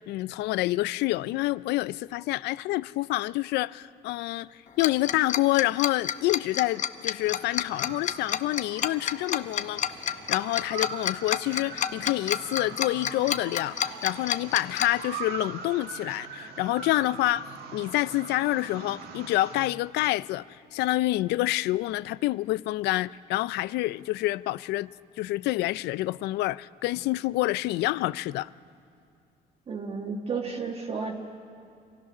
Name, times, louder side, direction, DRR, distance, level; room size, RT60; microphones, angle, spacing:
voice 1, 0.1-4.5 4.8-9.8 10.1-17.5 17.7-20.5 20.7-24.9 25.2-28.5, left 17 dB, 80° left, 0.4 m, -27 dB
Tick-tock, 4.8-14.9, left 9 dB, 45° left, 0.7 m, -29 dB
sound 1, 7.2-19.7, right 6 dB, 70° right, 1.5 m, -42 dB
voice 2, 29.7-31.1, right 5 dB, 35° right, 1.4 m, -32 dB
26.0 x 16.5 x 6.1 m
cardioid pair, 110°, 17 cm